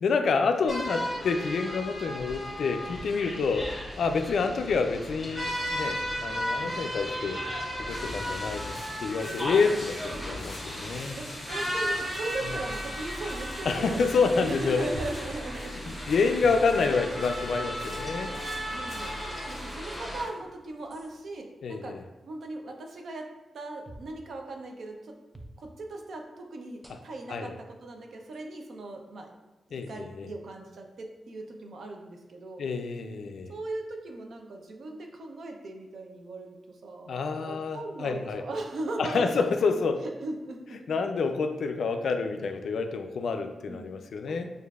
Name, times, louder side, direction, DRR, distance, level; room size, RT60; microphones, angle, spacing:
voice 1, 0.0-3.7 4.0-7.4 7.9-11.2 12.4-12.6 13.7-14.9 15.7-18.3 21.6-22.0 26.9-27.0 27.3-27.5 29.7-30.3 32.6-33.5 37.1-38.4 39.0-40.0 40.9-44.5, left 4 dB, 75° left, 6 dB, 0.3 m, -28 dB
sound 1, 0.7-20.2, equal, 5° left, 1.4 m, -35 dB
sound 2, 8.5-21.3, left 2 dB, 40° left, 0.9 m, -52 dB
voice 2, 11.2-16.4 18.7-19.2 19.5-22.0 22.3-25.2 25.6-29.3 29.7-32.7 33.5-39.5 40.0-41.0 43.7-43.9 44.3-44.4, right 2 dB, 65° right, 2 dB, 0.6 m, -39 dB
sound 3, 14.9-15.3 16.4-16.7 17.9-18.4 19.4-19.5 20.9-21.1 23.8-24.1 25.3-25.6 26.8-27.2 28.3-28.4 29.8-30.0, right 1 dB, 15° right, 0.4 m, -44 dB
6.6 x 2.5 x 2.3 m, 1.1 s
wide cardioid pair, 140°, 0 cm